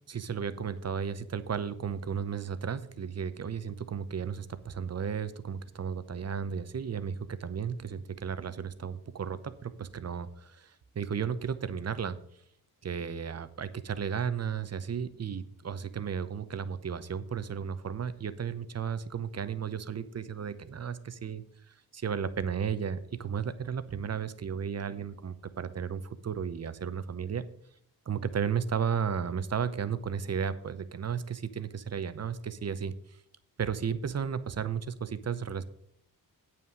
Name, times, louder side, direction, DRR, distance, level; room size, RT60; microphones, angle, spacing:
voice 1, 0.1-12.2 12.8-27.4 28.1-32.9 33.6-35.6, right 7 dB, 45° right, 13 dB, 0.7 m, -34 dB
9.1 x 5.8 x 6.4 m, 0.68 s
wide cardioid pair, 140°, 37 cm